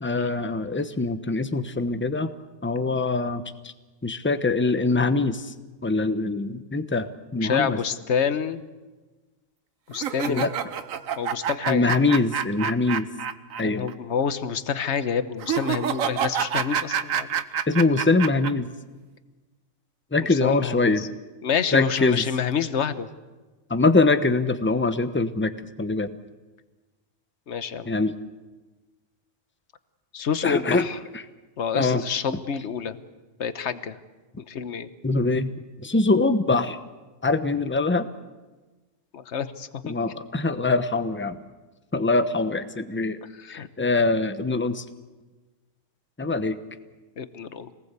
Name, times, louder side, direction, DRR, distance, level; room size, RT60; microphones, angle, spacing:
voice 1, 0.0-2.3 2.6-3.7 4.0-5.5 5.8-7.1 7.3-7.8 10.3-10.5 11.7-13.1 13.6-13.9 17.7-18.7 20.1-21.0 21.7-22.2 23.7-25.5 25.8-26.1 27.8-28.1 30.4-30.9 31.1-31.3 31.7-32.0 32.3-32.4 35.0-35.5 35.8-36.8 37.2-38.1 39.8-41.4 41.9-43.2 43.5-44.8 46.2-46.6, left 3 dB, 10° left, 11 dB, 0.8 m, -23 dB
voice 2, 7.3-8.7 9.9-10.5 11.2-11.9 13.6-17.4 20.3-21.1 21.4-23.1 27.5-27.9 30.1-31.0 31.6-33.0 33.4-34.0 34.4-34.9 39.1-39.9 43.4-43.7 47.2-47.7, left 7 dB, 60° left, 12 dB, 1.3 m, -28 dB
sound 1, 9.9-13.6 13.9-14.0 15.4-18.5, right 8 dB, 85° right, 1.4 m, -27 dB
26.0 x 19.5 x 8.2 m, 1.3 s
omnidirectional pair, 1.4 m